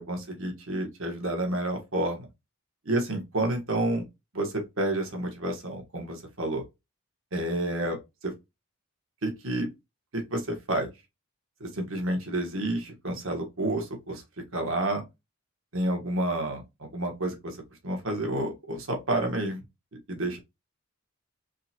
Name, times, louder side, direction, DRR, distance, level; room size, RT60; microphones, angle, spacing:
voice 1, 0.0-2.3 2.8-4.0 4.3-6.6 7.3-8.3 9.2-9.7 10.1-10.9 11.6-14.2 14.5-15.0 15.7-17.6 17.8-19.6 20.1-20.4, right 1 dB, 65° right, 1.3 m, -30 dB
3.8 x 3.4 x 2.9 m
head